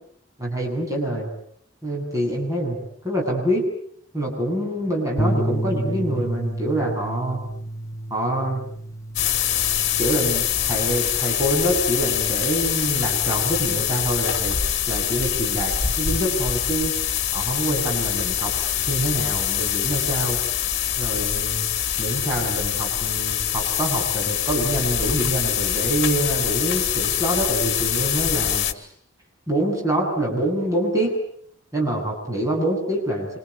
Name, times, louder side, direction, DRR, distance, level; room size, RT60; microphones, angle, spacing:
voice 1, 0.4-1.3 1.8-2.8 3.0-3.6 4.1-7.4 8.1-8.6 10.0-14.5 14.9-16.9 17.3-18.5 18.9-20.4 21.0-21.7 22.0-28.9 29.5-31.1 31.7-33.4, right 1 dB, 15° right, -1 dB, 7.8 m, -25 dB
sound 1, 5.2-13.6, right 1 dB, 15° left, 1.1 m, -31 dB
sound 2, 9.2-28.7, left 10 dB, 55° left, 1.9 m, -24 dB
27.0 x 26.0 x 8.3 m, 0.65 s
head